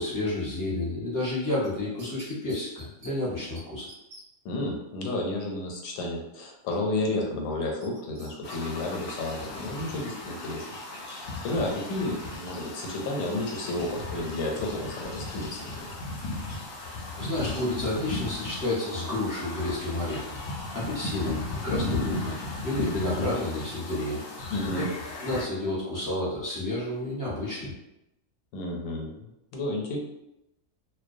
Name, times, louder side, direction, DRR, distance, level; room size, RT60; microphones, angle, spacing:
voice 1, 0.0-3.9 16.8-20.3 20.7-22.4 22.6-24.2 24.7-24.9 25.2-27.7, left 2 dB, 20° left, -8 dB, 0.6 m, -30 dB
sound 1, 1.6-3.1 3.6-3.7 3.9-4.2 7.8-8.6 9.0-9.1, right 2 dB, 55° right, 0.5 m, -48 dB
voice 2, 4.4-10.6 11.1-16.0 24.5-24.9 28.5-30.0, left 2 dB, 85° left, 0 dB, 1.0 m, -32 dB
sound 2, 8.4-25.4, left 2 dB, 60° left, 0.6 m, -36 dB
2.2 x 2.2 x 2.5 m, 0.88 s
omnidirectional pair, 1.4 m